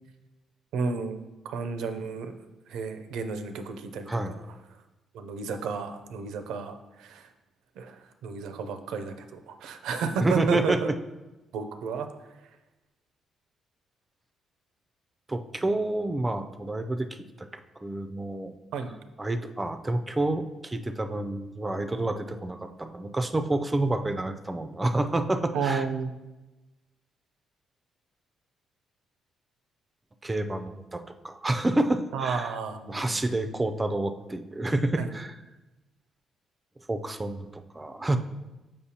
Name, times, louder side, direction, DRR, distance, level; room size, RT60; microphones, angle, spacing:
voice 1, 0.7-2.4 2.7-4.4 5.1-7.3 7.8-10.8 11.5-12.1 18.7-18.9 25.5-26.1 32.1-33.2 35.0-35.1, right 5 dB, 85° right, 8 dB, 0.5 m, -32 dB
voice 2, 4.1-4.4 10.2-10.8 15.3-17.1 17.4-18.5 19.2-25.8 30.2-32.5 32.9-35.4 36.9-38.2, right 2 dB, 20° right, 8 dB, 0.4 m, -29 dB
6.8 x 5.3 x 2.8 m, 1.1 s
cardioid pair, 90°, 0 cm